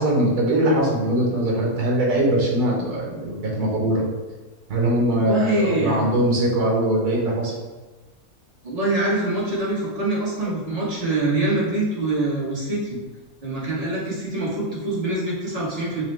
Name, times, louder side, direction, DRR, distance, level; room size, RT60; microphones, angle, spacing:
voice 1, 0.0-4.1 4.7-7.6, right 1 dB, 80° right, -2 dB, 1.5 m, -21 dB
voice 2, 5.2-6.0 8.6-13.0 13.4-16.0, right 2 dB, 25° right, -7 dB, 1.1 m, -24 dB
6.0 x 2.2 x 3.2 m, 1.2 s
omnidirectional pair, 1.6 m